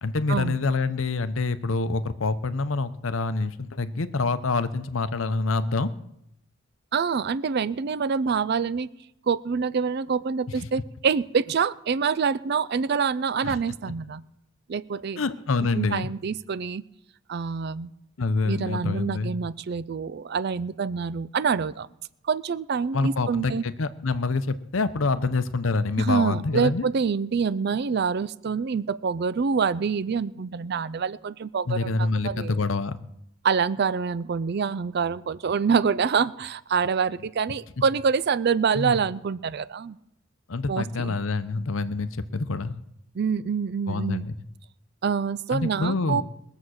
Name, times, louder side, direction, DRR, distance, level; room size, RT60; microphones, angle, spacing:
voice 1, 0.0-5.9 10.6-10.7 13.4-13.6 15.2-16.1 18.2-19.3 22.9-26.9 31.7-33.0 38.7-38.9 40.5-42.8 43.9-44.3 45.5-46.2, left 3 dB, 70° left, 13 dB, 0.7 m, -26 dB
voice 2, 6.9-8.9 9.3-14.2 14.7-15.2 15.7-16.8 17.3-17.9 18.5-21.9 22.3-23.6 26.0-32.6 33.4-40.0 40.7-41.2 43.2-44.2 45.0-46.2, right 5 dB, 50° right, 18 dB, 0.4 m, -26 dB
21.0 x 7.3 x 6.4 m, 0.81 s
head